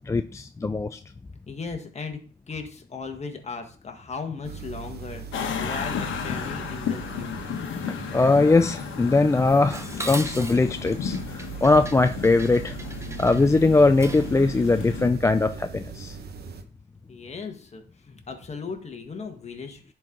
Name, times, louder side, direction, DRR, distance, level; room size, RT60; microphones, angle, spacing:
voice 1, 0.1-1.0 8.1-12.8 13.2-16.2, left 3 dB, 15° left, 9 dB, 0.3 m, -21 dB
voice 2, 1.5-2.2 2.5-7.4 17.1-19.9, left 4 dB, 35° left, 4 dB, 1.6 m, -37 dB
sound 1, 4.4-16.6, right 6 dB, 55° right, 1.1 m, -40 dB
sound 2, 5.3-15.1, left 7 dB, 75° left, 1.3 m, -34 dB
Dishes pots and pans, 9.7-14.4, right 2 dB, 15° right, 0.9 m, -38 dB
10.5 x 4.6 x 3.9 m, 0.42 s
cardioid pair, 90°, 20 cm